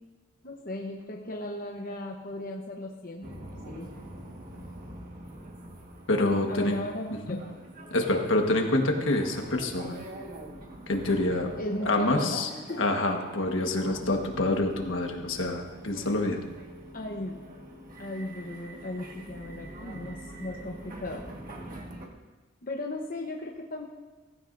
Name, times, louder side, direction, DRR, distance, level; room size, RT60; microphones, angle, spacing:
voice 1, 0.4-3.3 3.7-3.9 6.5-7.4 11.6-12.8 16.9-17.4 18.0-21.2 22.6-23.9, left 1 dB, 45° left, 0 dB, 1.0 m, -36 dB
sound 1, 3.2-22.1, right 1 dB, 45° right, 1.5 m, -44 dB
voice 2, 6.1-6.8 7.3-7.4 7.9-10.0 10.9-11.5 11.9-12.5 12.8-16.4, left 2 dB, 70° left, 3 dB, 1.5 m, -26 dB
16.5 x 15.5 x 2.6 m, 1.2 s
head